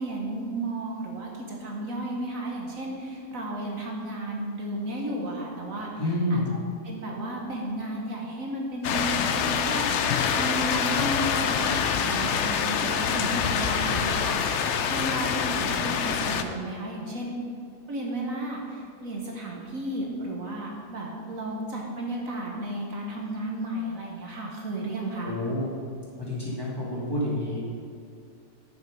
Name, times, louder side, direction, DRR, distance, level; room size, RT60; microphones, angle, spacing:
voice 1, 0.0-5.9 6.3-6.4 6.8-17.3 17.9-25.3, right 1 dB, 60° right, -1 dB, 1.5 m, -33 dB
voice 2, 6.0-6.5 25.2-25.7 26.2-27.6, left 1 dB, 15° left, -7 dB, 2.3 m, -28 dB
sound 1, 8.8-16.4, left 7 dB, 65° left, 0.7 m, -26 dB
10.5 x 6.1 x 5.2 m, 2.3 s
omnidirectional pair, 1.6 m